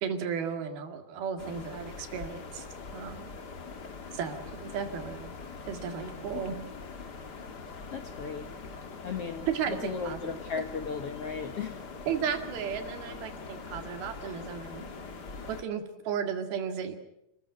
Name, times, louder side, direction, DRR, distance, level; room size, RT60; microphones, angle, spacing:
voice 1, 0.0-2.7 2.9-3.3 4.1-5.3 5.7-6.6 9.5-10.4 12.1-14.9 15.5-17.0, right 7 dB, 85° right, 7 dB, 4.0 m, -34 dB
sound 1, 1.4-15.6, left 4 dB, 40° left, 1.6 m, -43 dB
voice 2, 7.9-8.5 9.0-11.9, left 5 dB, 65° left, 7 dB, 1.5 m, -36 dB
28.5 x 14.5 x 9.5 m, 0.85 s
omnidirectional pair, 4.3 m